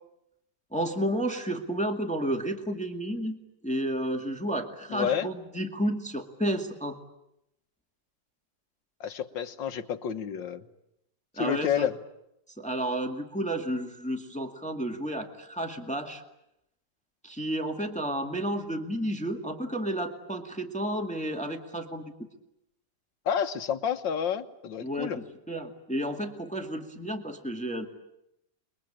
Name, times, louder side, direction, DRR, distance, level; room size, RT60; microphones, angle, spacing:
voice 1, 0.7-3.4 3.6-7.0 11.4-11.9 12.6-16.2 17.2-22.0 24.8-27.9, right 1 dB, 5° left, 4 dB, 2.0 m, -31 dB
voice 2, 4.9-5.3 9.0-10.6 11.4-11.9 23.3-25.2, left 8 dB, 85° left, 9 dB, 2.0 m, -29 dB
29.5 x 22.5 x 8.8 m, 0.82 s
omnidirectional pair, 2.0 m